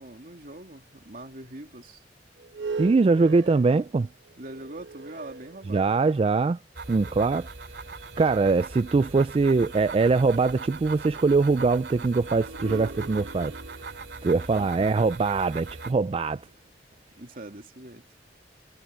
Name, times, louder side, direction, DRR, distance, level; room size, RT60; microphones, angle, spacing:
voice 1, 0.0-2.0 4.4-6.0 17.2-18.0, right 1 dB, 50° right, 3.1 m, -43 dB
sound 1, 2.4-6.2 6.9-7.0 12.2-16.5, right 3 dB, 90° right, 1.1 m, -40 dB
voice 2, 2.8-4.1 5.7-6.6 6.9-7.5 8.2-13.6 14.2-16.4, right 4 dB, 30° right, 0.3 m, -22 dB
sound 2, 6.7-15.9, right 4 dB, 65° right, 2.6 m, -40 dB
head